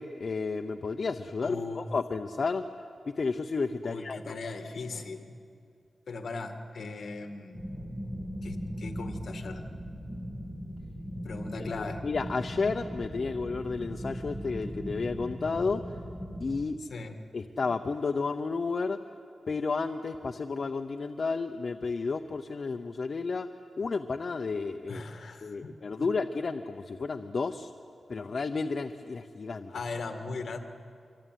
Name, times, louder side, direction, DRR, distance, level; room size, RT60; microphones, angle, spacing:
voice 1, 0.0-2.6 3.1-4.3 11.6-11.7 12.0-15.8 16.4-16.8 17.3-19.0 19.5-23.5 23.8-25.0 25.4-27.7 28.1-29.7, left 4 dB, 40° left, 7 dB, 0.8 m, -32 dB
voice 2, 1.4-1.9 3.8-5.4 6.1-7.6 8.4-9.7 11.2-12.1 16.8-17.2 24.9-26.1 29.7-30.6, left 3 dB, 60° left, 6 dB, 2.0 m, -38 dB
sound 1, 7.5-16.6, equal, 15° right, 2.1 m, -39 dB
25.5 x 25.0 x 9.3 m, 2.6 s
wide cardioid pair, 155°, 0 cm